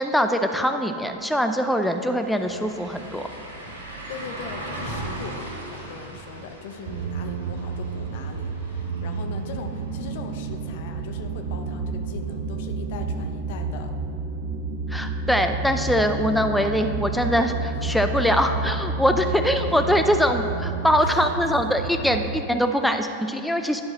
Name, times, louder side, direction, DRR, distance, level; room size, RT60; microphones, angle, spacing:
voice 1, 0.0-3.3 14.9-23.8, equal, ahead, 6 dB, 0.5 m, -23 dB
sound 1, 1.1-1.2 1.5-11.3 11.7-11.8 14.5-14.6, right 1 dB, 75° right, 1.4 m, -39 dB
voice 2, 4.1-13.9 17.7-18.0 19.2-19.3 19.7-19.9 21.0-21.7, left 5 dB, 50° left, 6 dB, 0.6 m, -40 dB
sound 2, 6.9-22.4, right 4 dB, 50° right, 0.5 m, -30 dB
11.0 x 4.8 x 4.0 m, 2.7 s
figure-of-eight pair, 90°, 0 cm